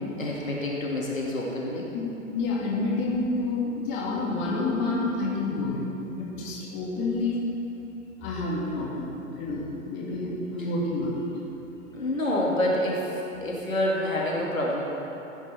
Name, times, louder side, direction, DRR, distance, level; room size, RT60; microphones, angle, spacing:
voice 1, 0.2-1.9 11.9-13.0 13.4-14.8, left 1 dB, 80° left, -4 dB, 2.3 m, -27 dB
voice 2, 2.3-7.5 8.2-11.2, left 2 dB, 30° left, -4 dB, 2.2 m, -29 dB
15.5 x 9.0 x 3.4 m, 3.0 s
figure-of-eight pair, 110°, 40 cm